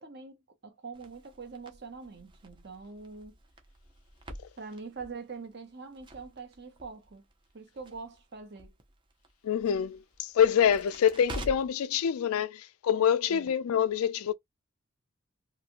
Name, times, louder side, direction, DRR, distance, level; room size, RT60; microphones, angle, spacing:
voice 1, 0.0-3.4 4.6-7.3 7.5-8.7 13.3-13.5, right 4 dB, 50° right, 0.9 m, -44 dB
Crackle, 0.9-11.9, right 1 dB, 20° right, 0.5 m, -48 dB
voice 2, 9.4-14.3, left 8 dB, 90° left, 0.4 m, -26 dB
2.6 x 2.5 x 2.8 m
head